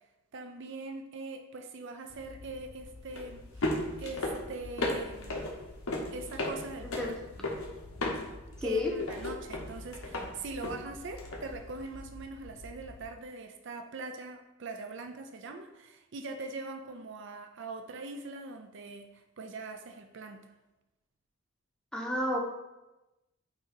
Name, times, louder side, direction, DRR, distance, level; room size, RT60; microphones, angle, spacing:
voice 1, 0.3-5.6 6.1-7.1 8.6-20.5, right 3 dB, 55° right, 6 dB, 0.5 m, -42 dB
sound 1, 2.1-13.0, left 1 dB, 75° left, 1.1 m, -37 dB
voice 2, 8.6-8.9 21.9-22.4, left 2 dB, 5° left, -1 dB, 0.8 m, -30 dB
8.6 x 3.0 x 4.4 m, 1.0 s
head